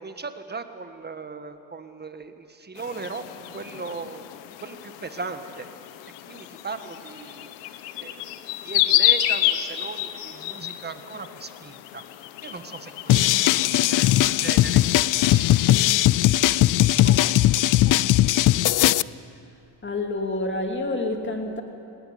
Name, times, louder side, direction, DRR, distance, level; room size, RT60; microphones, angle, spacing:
voice 1, 0.0-3.2 3.5-4.2 4.6-5.7 6.3-7.5 8.0-12.0 12.4-15.7 16.8-18.0, right 4 dB, 25° right, 9 dB, 1.7 m, -38 dB
sound 1, 2.8-15.6, left 13 dB, 85° left, 1.1 m, -30 dB
sound 2, 13.1-19.0, left 15 dB, 50° left, 0.5 m, -19 dB
voice 2, 19.8-21.6, left 2 dB, 25° left, 4 dB, 2.9 m, -28 dB
19.0 x 18.5 x 9.5 m, 2.7 s
supercardioid pair, 80°, 42 cm